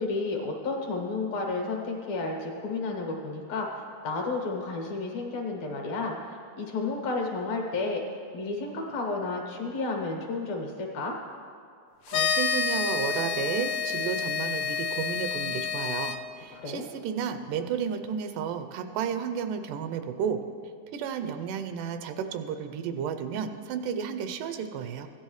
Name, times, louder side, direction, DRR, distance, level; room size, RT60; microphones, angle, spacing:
voice 1, 0.0-8.0 8.3-11.1 16.5-16.8, left 3 dB, 65° left, 0 dB, 2.3 m, -32 dB
sound 1, 12.1-16.2, left 6 dB, 85° left, 1.5 m, -29 dB
voice 2, 12.1-20.4 20.9-25.1, right 7 dB, 90° right, 8 dB, 2.2 m, -32 dB
16.0 x 10.0 x 3.1 m, 2.3 s
omnidirectional pair, 3.6 m